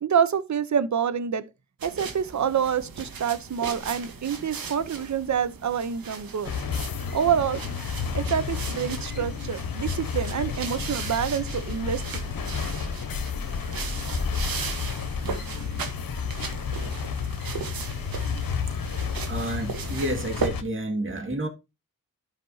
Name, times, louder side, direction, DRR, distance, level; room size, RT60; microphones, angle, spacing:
voice 1, 0.0-1.4 1.8-6.5 7.1-7.6 8.1-12.2, right 8 dB, 55° right, 0.9 m, -27 dB
sound 1, 1.8-20.5, right 5 dB, 90° right, 1.4 m, -37 dB
sound 2, 6.4-20.6, left 6 dB, 80° left, 1.1 m, -31 dB
voice 2, 18.5-21.5, right 1 dB, 35° right, 2.2 m, -31 dB
13.0 x 5.2 x 2.8 m
cardioid pair, 65°, 34 cm